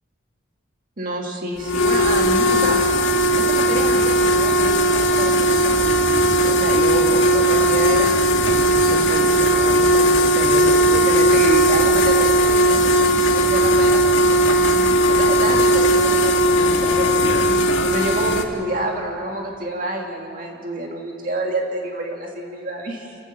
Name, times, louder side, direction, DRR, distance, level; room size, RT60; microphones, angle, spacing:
voice 1, 1.0-2.8 3.4-8.1 8.4-14.7 15.1-17.4 17.8-23.2, right 1 dB, 45° right, 0 dB, 2.1 m, -28 dB
sound 1, 1.6-18.4, right 1 dB, 80° left, 1.7 m, -17 dB
28.5 x 16.0 x 6.7 m, 2.7 s
head